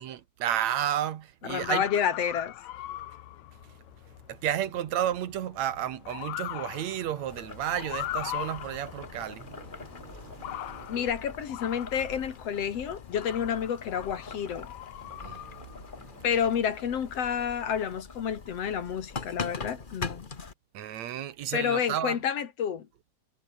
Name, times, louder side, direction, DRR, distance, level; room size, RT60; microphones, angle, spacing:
voice 1, 0.0-1.8 4.3-11.0 15.0-16.2 20.7-22.2, right 11 dB, 70° right, 2.6 m, -32 dB
voice 2, 1.4-2.5 10.9-14.7 16.2-20.3 21.5-22.9, left 8 dB, 60° left, 2.7 m, -29 dB
Motor vehicle (road) / Siren, 1.5-17.1, left 14 dB, 75° left, 2.3 m, -42 dB
Boiling, 7.3-20.5, left 4 dB, 40° left, 0.7 m, -43 dB
omnidirectional pair, 3.3 m